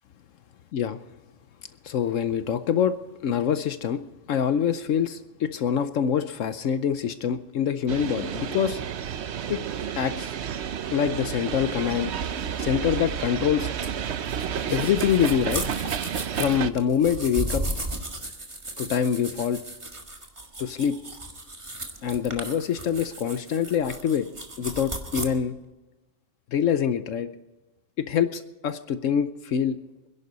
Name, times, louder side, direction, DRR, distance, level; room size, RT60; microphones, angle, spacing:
voice 1, 1.8-2.9 3.2-4.0 4.3-8.8 9.5-9.6 9.9-10.3 10.9-12.1 12.6-13.7 14.7-15.6 16.3-17.6 18.8-19.6 20.6-20.9 22.0-24.2 24.6-25.5 26.5-27.3 28.0-29.8, left 8 dB, 75° left, 11 dB, 1.1 m, -25 dB
sound 1, 7.9-16.7, right 8 dB, 60° right, 1.0 m, -31 dB
sound 2, 13.8-25.3, right 1 dB, 25° right, 1.7 m, -35 dB
26.0 x 11.0 x 4.1 m, 1.1 s
omnidirectional pair, 1.4 m